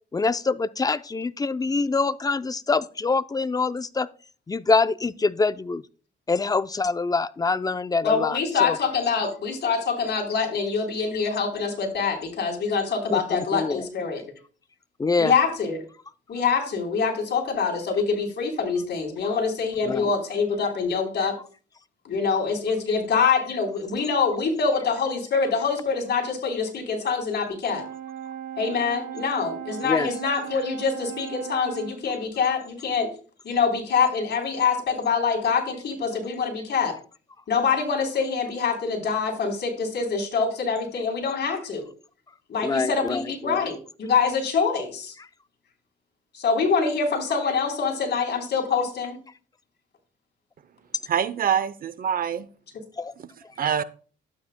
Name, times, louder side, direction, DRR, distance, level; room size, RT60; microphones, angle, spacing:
voice 1, 0.1-4.1 4.5-5.8 6.3-8.8 13.1-13.8 15.0-15.3 19.9-20.1 29.8-30.1 42.6-43.7 53.0-53.1, left 4 dB, 20° left, 0.5 m, -25 dB
voice 2, 8.0-14.2 15.2-15.8 16.3-21.4 22.0-27.8 28.6-33.1 33.4-36.9 37.5-41.9 42.5-45.1 46.3-49.2, left 5 dB, 60° left, 3.8 m, -25 dB
Brass instrument, 27.7-32.1, right 10 dB, 80° right, 3.4 m, -37 dB
voice 3, 51.1-52.5 53.2-53.3 53.6-53.8, right 8 dB, 45° right, 0.7 m, -25 dB
12.0 x 8.7 x 2.2 m
cardioid pair, 90°, 20 cm